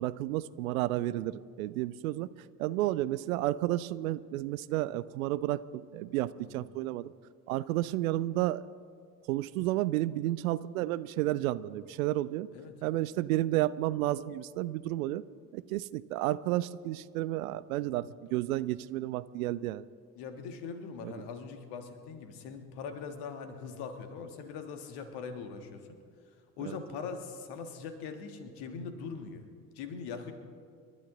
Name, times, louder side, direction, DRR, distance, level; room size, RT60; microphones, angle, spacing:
voice 1, 0.0-2.3 2.6-7.1 7.5-8.6 9.3-12.5 12.8-15.2 15.5-19.9 21.0-21.3 26.6-26.8, right 15 dB, 60° right, 17 dB, 0.6 m, -31 dB
voice 2, 20.2-26.0 26.6-29.5 29.7-30.3, left 5 dB, 55° left, 7 dB, 1.8 m, -41 dB
28.5 x 11.5 x 3.8 m, 2.2 s
figure-of-eight pair, 60°, 49 cm